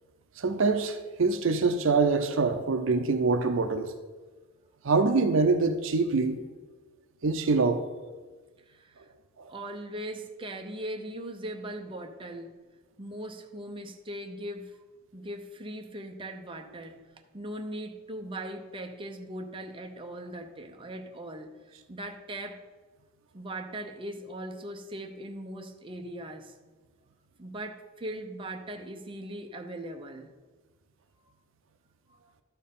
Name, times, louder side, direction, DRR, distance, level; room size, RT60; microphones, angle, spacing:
voice 1, 0.4-3.9 4.8-6.4 7.2-7.8 9.4-9.5, right 4 dB, 70° right, 0.6 m, -25 dB
voice 2, 8.7-9.1 9.5-12.6 13.0-14.8 15.1-17.0 17.3-22.6 23.3-26.5 27.4-30.3, right 1 dB, 25° right, 0.7 m, -39 dB
12.5 x 4.5 x 5.4 m
head